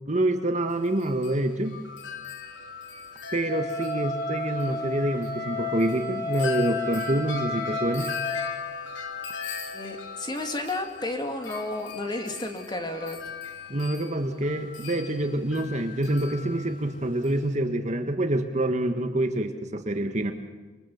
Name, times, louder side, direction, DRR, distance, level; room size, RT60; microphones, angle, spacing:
voice 1, 0.1-1.8 3.3-8.1 13.7-20.3, right 1 dB, 40° right, 6 dB, 1.6 m, -26 dB
Wind chime, 0.7-17.6, left 6 dB, 85° left, 3.1 m, -39 dB
Wind instrument woodwind instrument, 3.4-8.5, left 2 dB, 50° left, 6.7 m, -32 dB
voice 2, 9.7-13.3, left 2 dB, 25° left, 4 dB, 2.5 m, -32 dB
27.0 x 24.5 x 7.2 m, 1.3 s
head